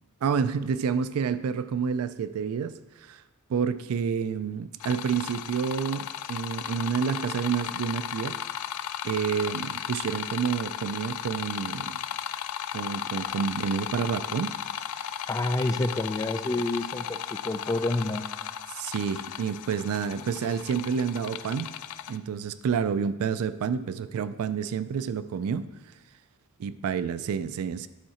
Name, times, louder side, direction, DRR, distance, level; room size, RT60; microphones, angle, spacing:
voice 1, 0.2-3.2 3.5-8.4 9.0-12.0 12.7-14.5 14.9-15.0 18.8-21.7 22.1-25.7 26.6-27.9, right 6 dB, 70° right, 14 dB, 0.3 m, -29 dB
sound 1, 4.8-22.2, left 9 dB, 85° left, 0.4 m, -35 dB
voice 2, 15.3-18.3, left 2 dB, 15° left, 8 dB, 0.4 m, -28 dB
10.5 x 4.7 x 4.3 m, 1.1 s
head